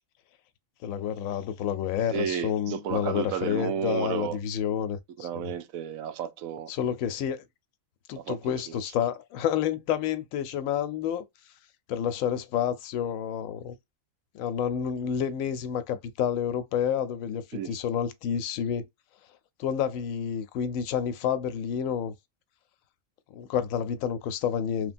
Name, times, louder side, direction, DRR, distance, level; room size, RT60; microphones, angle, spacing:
voice 1, 0.8-5.5 6.7-7.4 8.1-11.2 11.9-13.7 14.3-18.8 19.6-22.1 23.3-24.9, left 8 dB, 80° left, 1.0 m, -29 dB
voice 2, 2.1-4.4 5.2-6.7 8.2-8.8 17.5-17.8, right 9 dB, 85° right, 1.0 m, -32 dB
3.2 x 2.2 x 2.5 m
omnidirectional pair, 1.4 m